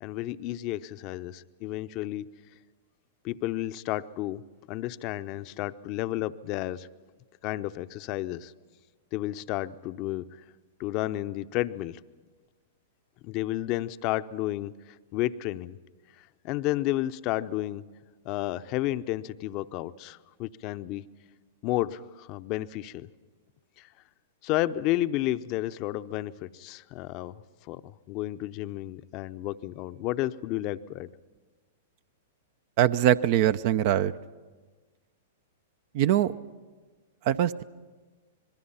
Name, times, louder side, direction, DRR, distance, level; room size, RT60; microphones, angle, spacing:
voice 1, 0.0-2.3 3.2-4.4 4.7-6.9 7.4-8.5 9.1-10.3 10.8-12.0 13.2-14.7 15.1-15.8 16.4-17.8 18.2-21.0 21.6-23.1 23.8-23.9 24.4-27.4 27.7-31.1, left 15 dB, 45° left, 13 dB, 0.7 m, -31 dB
voice 2, 32.8-34.1 35.9-36.3 37.2-37.6, right 11 dB, 50° right, 13 dB, 0.6 m, -22 dB
25.5 x 21.5 x 5.6 m, 1.3 s
hypercardioid pair, 110°, 0 cm